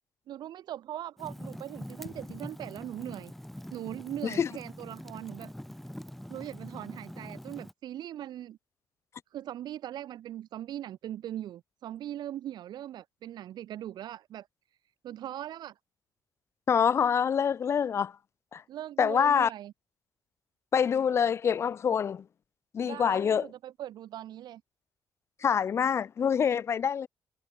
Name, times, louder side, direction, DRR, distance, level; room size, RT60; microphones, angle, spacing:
voice 1, 0.3-3.3 3.7-5.5 6.3-8.6 9.3-14.5 15.0-15.7 18.7-19.7 22.8-24.6, right 12 dB, 70° right, 0.9 m, -40 dB
Fire, 1.2-7.7, equal, ahead, 1.2 m, -44 dB
voice 2, 16.7-18.1 18.5-18.6 19.0-19.5 20.7-22.2 22.7-23.5 25.4-27.1, left 7 dB, 35° left, 0.4 m, -26 dB
cardioid pair, 135°, 7 cm